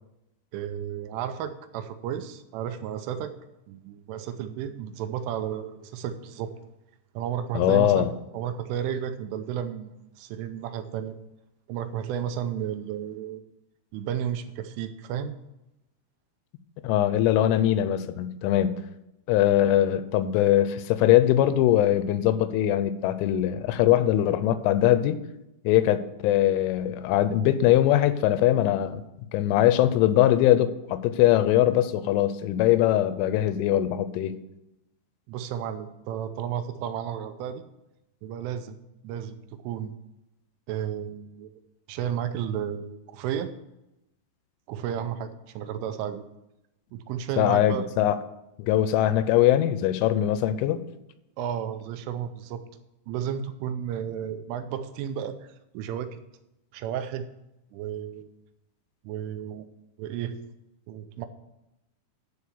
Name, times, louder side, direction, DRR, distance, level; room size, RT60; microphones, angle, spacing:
voice 1, 0.5-3.3 3.7-6.5 7.1-11.1 11.7-13.4 13.9-15.3 35.3-37.6 38.2-38.8 39.0-39.4 39.6-39.9 40.7-41.5 41.9-43.5 44.7-46.2 46.9-47.9 51.4-52.6 53.1-56.2 56.7-57.3 57.7-58.3 59.0-59.7 60.0-60.4 60.9-61.3, right 9 dB, 85° right, 10 dB, 3.2 m, -33 dB
voice 2, 7.6-8.1 16.8-18.8 19.3-25.2 25.7-29.0 29.3-34.3 47.4-48.2 48.6-50.8, left 12 dB, 85° left, 12 dB, 3.0 m, -21 dB
11.5 x 4.6 x 7.0 m, 0.89 s
omnidirectional pair, 5.6 m